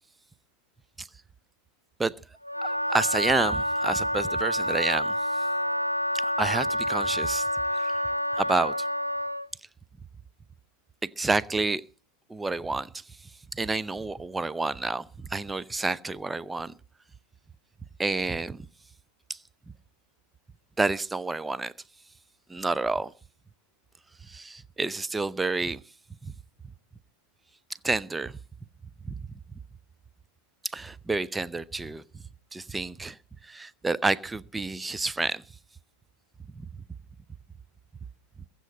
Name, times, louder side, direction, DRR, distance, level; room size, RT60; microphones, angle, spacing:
Wind instrument woodwind instrument, 2.4-9.5, equal, 90° left, 0.7 m, -28 dB
voice 1, 2.6-5.1 6.2-7.4 8.3-8.7 11.2-11.8 12.3-12.9 13.5-15.0 15.3-16.7 18.0-18.6 20.8-21.7 22.5-23.1 24.3-25.8 27.8-28.3 29.1-29.2 30.7-32.0 32.5-33.1 33.5-35.4, right 3 dB, 10° right, 0.6 m, -29 dB
22.0 x 7.7 x 5.4 m
figure-of-eight pair, 90°, 0 cm